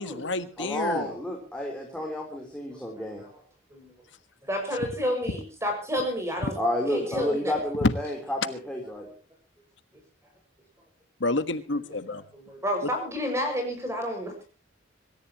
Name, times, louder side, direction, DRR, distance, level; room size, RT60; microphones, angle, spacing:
voice 1, 0.0-1.1 6.4-6.5 7.8-7.9 11.2-12.2 12.8-12.9, left 2 dB, 65° left, 12 dB, 1.5 m, -28 dB
voice 2, 0.6-3.2 6.6-9.1, left 1 dB, 5° left, 0 dB, 3.7 m, -30 dB
voice 3, 4.4-6.5 6.9-7.5 12.3-14.3, equal, 15° right, 4 dB, 6.2 m, -30 dB
25.5 x 14.0 x 3.0 m, 0.37 s
head